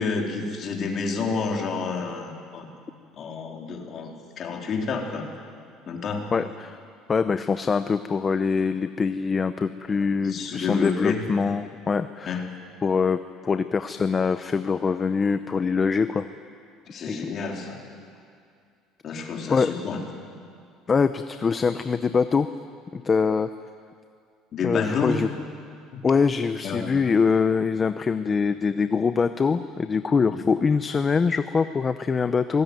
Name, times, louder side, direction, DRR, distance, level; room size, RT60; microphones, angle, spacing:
voice 1, 0.0-2.7 3.2-4.1 4.4-5.3 5.9-6.3 10.2-11.2 12.3-12.4 16.9-17.8 19.0-20.0 24.5-25.2 25.9-26.0 26.6-26.9 30.3-30.5, left 4 dB, 35° left, 1 dB, 3.5 m, -29 dB
voice 2, 6.3-6.8 7.1-12.4 12.8-16.3 17.1-17.2 19.5-19.7 20.9-22.5 22.9-23.5 24.6-25.3 26.0-32.6, left 5 dB, 20° left, 11 dB, 0.6 m, -23 dB
26.0 x 19.5 x 9.3 m, 2.3 s
cardioid pair, 150°, 0 cm